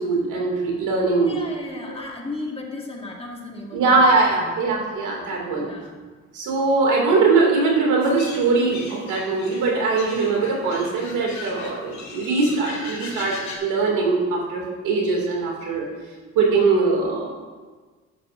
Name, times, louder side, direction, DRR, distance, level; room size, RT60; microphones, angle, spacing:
voice 1, 0.0-1.4 1.8-2.0 3.7-5.7 6.3-13.3 13.6-15.9 16.3-17.3, right 3 dB, 85° right, -1 dB, 2.5 m, -21 dB
voice 2, 1.2-4.0 4.4-4.6 5.5-6.1, left 2 dB, 20° left, 0 dB, 1.5 m, -35 dB
sound 1, 8.0-13.6, left 3 dB, 65° left, 2.5 m, -38 dB
11.5 x 7.9 x 2.6 m, 1.4 s
cardioid pair, 90°, 30 cm